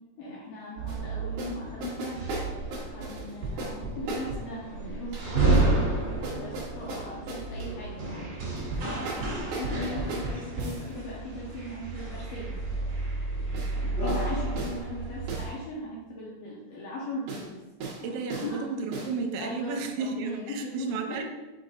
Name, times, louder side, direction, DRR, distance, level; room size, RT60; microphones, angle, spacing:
voice 1, 0.2-2.2 2.7-5.9 6.4-8.3 9.2-12.6 13.8-17.6 18.0-18.6 19.4-21.2, left 1 dB, 75° left, -5 dB, 2.2 m, -38 dB
sound 1, 0.8-15.5, right 3 dB, 40° right, 2.2 m, -31 dB
sound 2, 0.9-1.0 1.4-1.6 1.8-4.5 5.1-5.7 6.2-7.7 8.6-10.9 13.5-13.7 14.1-14.3 14.6-14.8 15.3-15.5 17.3-17.5 17.8-18.0 18.3-18.5 18.9-19.1, right 3 dB, 65° right, 2.1 m, -36 dB
voice 2, 9.2-9.5 18.0-21.2, right 4 dB, 90° right, 4 dB, 3.0 m, -33 dB
6.6 x 6.0 x 2.5 m, 1.1 s
omnidirectional pair, 5.3 m